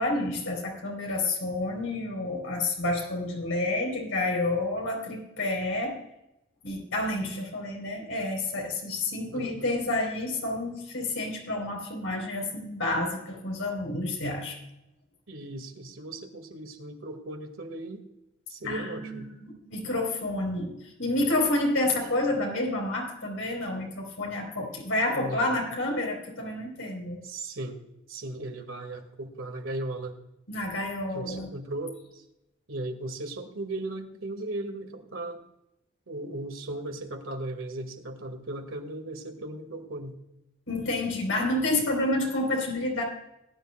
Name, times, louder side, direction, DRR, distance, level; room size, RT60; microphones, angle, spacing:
voice 1, 0.0-6.0 6.6-14.6 18.6-27.2 30.5-31.5 40.7-43.0, left 2 dB, 80° left, 0 dB, 3.7 m, -29 dB
voice 2, 9.3-9.7 15.3-18.0 18.5-19.3 25.1-25.6 27.2-27.8 28.1-30.2 31.1-32.2 32.7-35.4 36.1-40.2, right 2 dB, 80° right, 4 dB, 1.9 m, -37 dB
19.5 x 10.0 x 2.2 m, 0.88 s
head